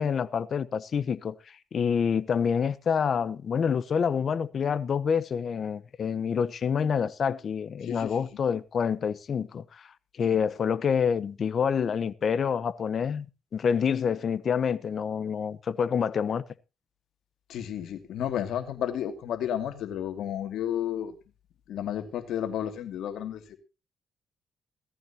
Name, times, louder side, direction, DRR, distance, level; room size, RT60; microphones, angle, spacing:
voice 1, 0.0-1.3 1.7-9.6 10.2-13.3 13.5-16.4, left 7 dB, 50° left, 0.9 m, -27 dB
voice 2, 7.8-8.4 10.2-10.4 17.5-21.1 21.7-23.6, left 10 dB, 75° left, 2.5 m, -32 dB
17.5 x 14.0 x 2.9 m
cardioid pair, 90°, 0 cm